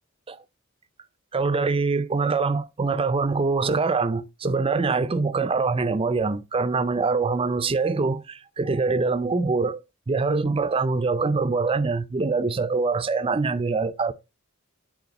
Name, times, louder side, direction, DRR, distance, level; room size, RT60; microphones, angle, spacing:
voice 1, 1.3-14.1, right 4 dB, 25° right, 0.5 m, -24 dB
9.6 x 4.4 x 3.0 m
head